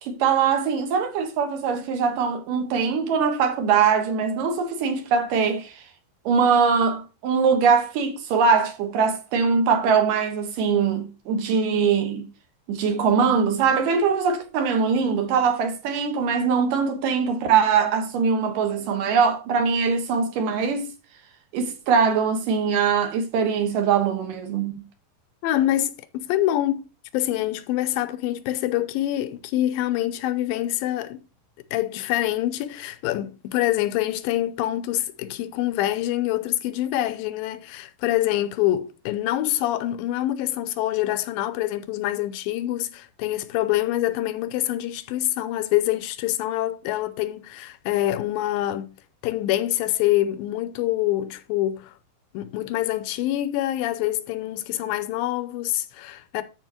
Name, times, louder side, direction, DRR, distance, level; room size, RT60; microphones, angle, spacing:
voice 1, 0.0-5.8 6.3-12.3 12.7-20.9 21.5-24.8, right 6 dB, 70° right, 2.8 m, -22 dB
voice 2, 25.4-26.8 27.1-31.2 31.7-48.9 49.2-51.9 52.3-56.4, left 14 dB, 85° left, 2.4 m, -25 dB
12.5 x 5.1 x 2.9 m
omnidirectional pair, 4.1 m